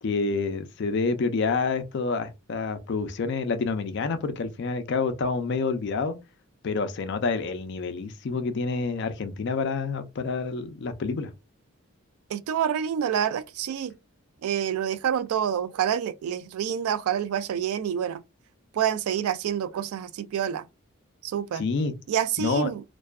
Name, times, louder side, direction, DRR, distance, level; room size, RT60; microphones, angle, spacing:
voice 1, 0.0-6.2 6.6-11.3 21.5-21.9 22.4-22.7, left 4 dB, 55° left, 0.4 m, -28 dB
voice 2, 12.3-13.9 14.4-18.2 18.7-20.7 21.2-21.6 22.1-22.8, right 9 dB, 85° right, 0.3 m, -27 dB
2.5 x 2.3 x 2.2 m
head